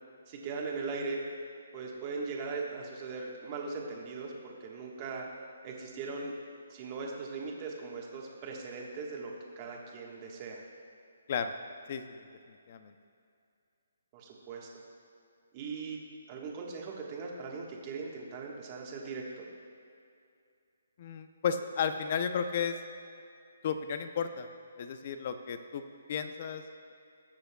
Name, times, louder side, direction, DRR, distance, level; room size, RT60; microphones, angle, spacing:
voice 1, 0.3-1.2 1.7-5.2 5.6-6.3 6.7-10.6 14.1-14.7 15.5-16.0 16.3-19.5, right 4 dB, 25° right, -1 dB, 1.4 m, -39 dB
voice 2, 11.9-12.3 12.7-12.9 21.0-22.8 23.6-24.5 24.8-25.8 26.1-26.6, left 7 dB, 40° left, 9 dB, 0.6 m, -33 dB
20.0 x 6.7 x 2.3 m, 2.5 s
hypercardioid pair, 160°, 0 cm